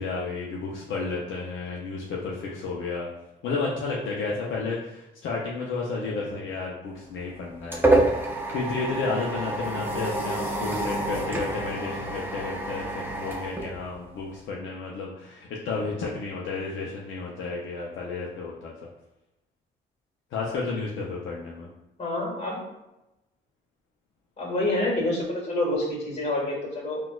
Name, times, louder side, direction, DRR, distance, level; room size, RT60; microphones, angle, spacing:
voice 1, 0.0-3.1 3.4-7.8 8.5-18.7 20.3-21.7, left 4 dB, 75° left, -3 dB, 0.5 m, -32 dB
sound 1, 7.0-14.4, right 1 dB, 10° right, 0.5 m, -28 dB
voice 2, 22.0-22.6 24.4-27.0, left 1 dB, 35° left, -3 dB, 1.5 m, -28 dB
4.0 x 2.3 x 2.3 m, 0.94 s
cardioid pair, 90°, 20 cm